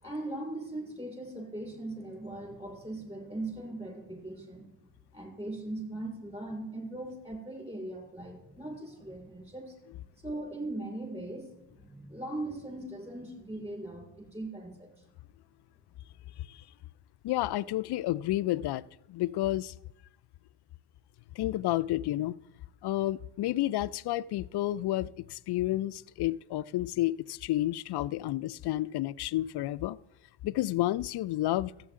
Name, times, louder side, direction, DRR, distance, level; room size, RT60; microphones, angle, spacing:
voice 1, 0.0-4.7 5.1-9.8 10.2-15.0, right 2 dB, 15° right, 5.1 m, -39 dB
voice 2, 17.2-19.7 21.4-22.4 22.8-30.0 30.4-31.7, left 15 dB, 55° left, 0.5 m, -30 dB
14.0 x 8.3 x 3.7 m
supercardioid pair, 60°, 49 cm